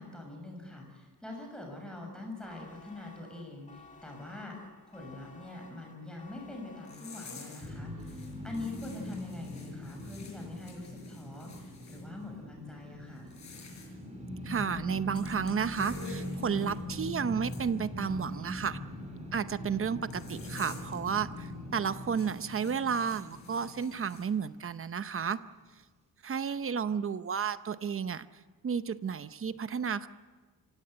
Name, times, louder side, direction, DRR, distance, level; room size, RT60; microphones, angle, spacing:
voice 1, 0.0-4.6 4.9-13.3, left 2 dB, ahead, 1 dB, 6.7 m, -44 dB
sound 1, 2.4-7.7, left 4 dB, 20° left, 2.1 m, -55 dB
sound 2, 6.9-7.7 8.0-12.1 13.2-13.9 15.1-16.8 17.4-17.6 20.1-21.0 21.3-21.5 22.0-24.3, left 5 dB, 45° left, 6.0 m, -50 dB
sound 3, 7.6-24.8, left 1 dB, 20° right, 4.4 m, -42 dB
voice 2, 14.4-18.8 19.3-25.4 26.2-28.3 28.6-30.1, right 7 dB, 35° right, 13 dB, 0.8 m, -32 dB
26.0 x 17.0 x 7.9 m, 1.4 s
wide cardioid pair, 145°, 38 cm